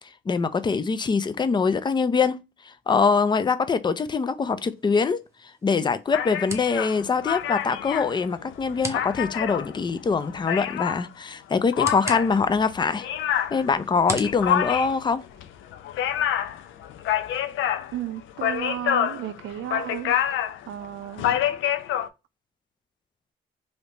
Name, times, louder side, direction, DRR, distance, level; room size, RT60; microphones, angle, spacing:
voice 1, 0.3-2.4 2.7-5.2 5.6-13.1 13.5-15.2, left 5 dB, 25° left, 0.4 m, -23 dB
sound 1, 4.7-15.7, right 2 dB, 15° right, 0.7 m, -42 dB
sound 2, 6.1-11.1 11.7-22.1, left 10 dB, 80° left, 0.5 m, -27 dB
voice 2, 17.9-21.4, right 12 dB, 75° right, 0.4 m, -34 dB
3.3 x 2.7 x 2.8 m
cardioid pair, 90°, 20 cm